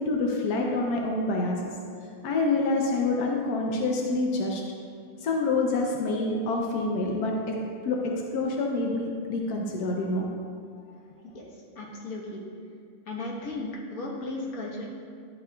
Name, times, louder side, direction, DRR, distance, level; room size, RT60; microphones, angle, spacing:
voice 1, 0.0-1.7 2.2-4.6 5.2-7.6 7.8-8.0 8.3-10.3 10.8-10.9, left 2 dB, 75° left, 0 dB, 0.8 m, -27 dB
voice 2, 11.8-12.4 13.1-14.9, left 2 dB, 50° left, -3 dB, 1.3 m, -35 dB
11.0 x 7.5 x 2.3 m, 2.3 s
omnidirectional pair, 2.4 m